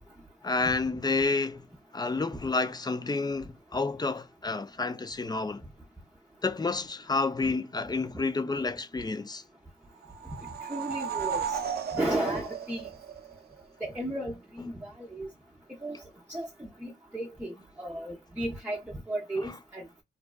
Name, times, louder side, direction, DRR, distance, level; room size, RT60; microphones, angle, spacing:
voice 1, 0.4-1.7 1.9-5.6 6.4-9.4, left 3 dB, 20° left, 0.4 m, -30 dB
sound 1, 10.0-13.6, right 7 dB, 55° right, 0.5 m, -34 dB
voice 2, 10.7-11.5 11.9-12.9 13.8-15.3 15.8-16.0 16.3-20.0, right 1 dB, 10° right, 0.7 m, -34 dB
2.5 x 2.2 x 2.2 m
cardioid pair, 55°, 19 cm